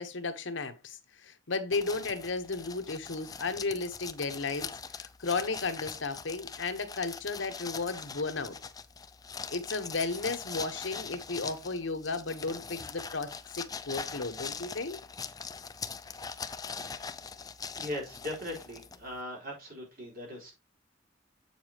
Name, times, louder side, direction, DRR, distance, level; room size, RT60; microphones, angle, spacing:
voice 1, 0.0-8.6 9.5-15.0, left 3 dB, 70° left, 1.1 m, -34 dB
sound 1, 1.7-19.2, left 5 dB, 20° left, 0.5 m, -42 dB
voice 2, 17.8-20.5, left 1 dB, 50° right, 4.0 m, -39 dB
7.3 x 7.0 x 2.9 m
head